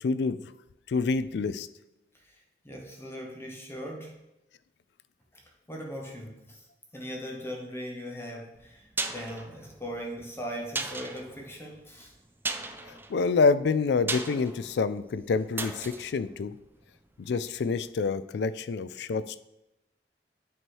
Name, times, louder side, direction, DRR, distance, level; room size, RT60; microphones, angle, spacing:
voice 1, 0.0-0.4 0.9-1.7 12.8-16.6 17.2-19.4, left 4 dB, 70° left, 15 dB, 0.4 m, -27 dB
voice 2, 2.6-4.1 5.7-6.6 6.9-12.1, equal, 15° left, 0 dB, 0.9 m, -39 dB
sound 1, 8.6-17.4 17.7-17.8, right 3 dB, 10° right, 0.3 m, -38 dB
9.0 x 3.1 x 4.6 m, 0.91 s
head